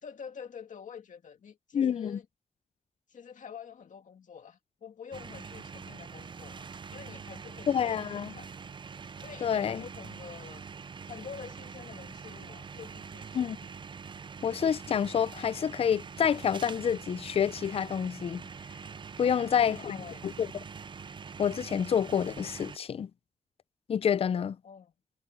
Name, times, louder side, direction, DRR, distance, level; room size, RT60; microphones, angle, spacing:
voice 1, 0.0-2.3 3.1-8.5 9.2-10.6 11.1-13.6 19.2-20.2 24.6-24.9, left 7 dB, 65° left, 2.1 m, -47 dB
voice 2, 1.7-2.2 7.7-8.4 9.4-9.8 13.3-13.6 14.4-18.4 19.2-20.0 20.2-20.5 21.4-23.1 23.9-24.6, left 8 dB, 45° left, 0.4 m, -28 dB
sound 1, 5.1-22.8, right 5 dB, 35° right, 0.4 m, -44 dB
wide cardioid pair, 155°, 14 cm